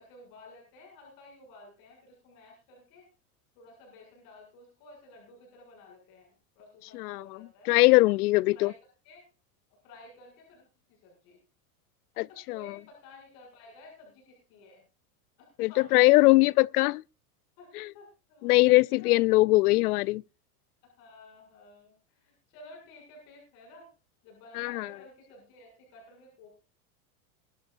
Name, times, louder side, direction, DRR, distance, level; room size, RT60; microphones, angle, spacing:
voice 1, 0.0-3.1 3.6-7.8 8.5-8.8 9.0-9.3 9.8-11.4 12.2-14.8 15.4-16.6 17.6-18.5 19.0-19.3 20.8-23.9 24.2-26.6, left 2 dB, 50° left, 7.1 m, -53 dB
voice 2, 6.9-7.2 7.7-8.7 12.2-12.6 15.6-17.0 18.4-20.2 24.6-24.9, left 21 dB, 85° left, 0.5 m, -21 dB
23.0 x 12.0 x 2.6 m
supercardioid pair, 140°, 44 cm